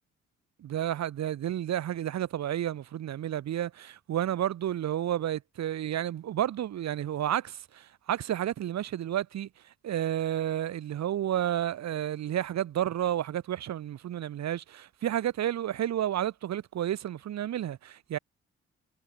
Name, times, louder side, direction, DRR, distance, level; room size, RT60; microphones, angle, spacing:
voice 1, 0.6-18.2, right 11 dB, 50° right, 1.2 m, -31 dB
figure-of-eight pair, 40°, 34 cm